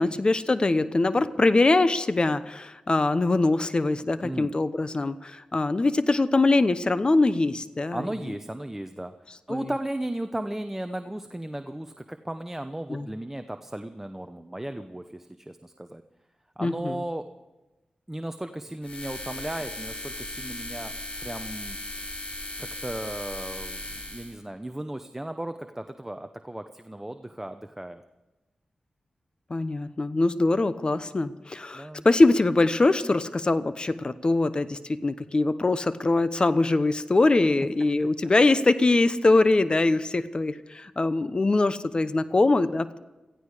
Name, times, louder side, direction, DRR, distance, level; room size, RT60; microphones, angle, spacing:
voice 1, 0.0-8.0 9.5-9.6 12.9-13.1 16.6-17.0 29.5-43.0, left 2 dB, 40° left, 13 dB, 0.8 m, -23 dB
voice 2, 4.2-4.6 7.9-16.0 16.6-17.2 18.1-20.9 21.2-21.8 22.6-28.0 31.7-32.1 38.0-38.1, right 1 dB, 15° right, 8 dB, 0.8 m, -35 dB
sound 1, 18.8-24.3, left 1 dB, 55° left, 4.0 m, -37 dB
18.0 x 15.0 x 5.0 m, 1.1 s
cardioid pair, 55°, 2 cm